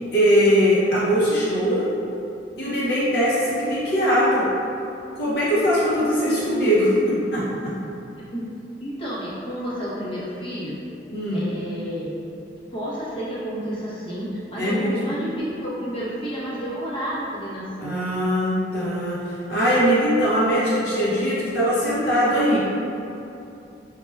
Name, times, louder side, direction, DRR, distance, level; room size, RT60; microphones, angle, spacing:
voice 1, 0.1-1.9 2.6-4.5 5.2-6.9 7.3-7.7 11.1-11.5 14.6-15.0 17.8-22.6, equal, 60° left, -8 dB, 0.7 m, -21 dB
voice 2, 6.2-7.2 8.3-8.4 8.8-10.8 11.3-12.1 12.7-18.0, equal, 30° left, -9 dB, 0.8 m, -30 dB
5.6 x 2.1 x 2.2 m, 2.7 s
head